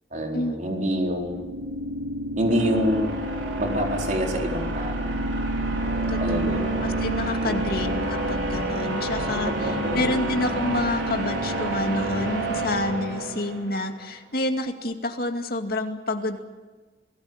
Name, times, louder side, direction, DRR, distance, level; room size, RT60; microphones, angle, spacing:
voice 1, 0.1-1.4 2.4-3.1 3.6-5.1 6.2-6.8 7.4-7.8 9.4-10.1, equal, 45° right, 1 dB, 4.4 m, -27 dB
sound 1, 0.9-13.8, right 1 dB, 85° right, 4.8 m, -28 dB
voice 2, 6.1-16.4, left 1 dB, 55° left, 5 dB, 2.3 m, -28 dB
27.5 x 18.5 x 9.0 m, 1.3 s
head